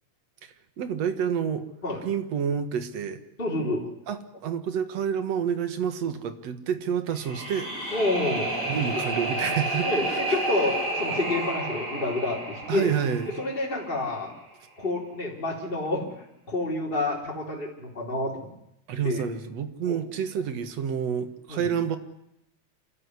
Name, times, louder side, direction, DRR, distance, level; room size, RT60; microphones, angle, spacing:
voice 1, 0.4-1.6 2.0-3.2 4.1-7.7 8.6-10.4 12.7-13.4 18.9-22.0, right 7 dB, 65° right, 10 dB, 2.6 m, -29 dB
voice 2, 3.4-3.8 7.9-8.5 9.8-12.9 13.4-14.3 14.8-18.5 19.0-19.2 19.9-20.0 21.5-21.7, left 2 dB, 15° left, -3 dB, 4.0 m, -28 dB
sound 1, 7.1-14.2, right 2 dB, 25° right, 8.3 m, -31 dB
27.0 x 14.0 x 9.7 m, 0.82 s
omnidirectional pair, 3.3 m